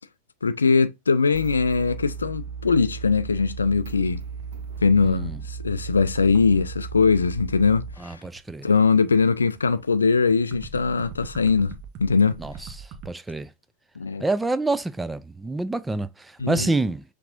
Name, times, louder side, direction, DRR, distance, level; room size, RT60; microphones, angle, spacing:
voice 1, 0.4-4.2 4.8-8.2 8.6-11.7 12.0-12.4 14.0-14.2 16.4-16.7, left 4 dB, 75° left, 0.3 m, -21 dB
sound 1, 1.3-7.9, right 6 dB, 60° right, 1.1 m, -36 dB
sound 2, 4.1-13.1, right 5 dB, 40° right, 0.8 m, -43 dB
voice 2, 5.0-5.4 8.0-8.7 12.4-13.5 14.2-17.0, right 2 dB, 10° right, 0.4 m, -27 dB
5.8 x 3.3 x 2.5 m
figure-of-eight pair, 90°, 0 cm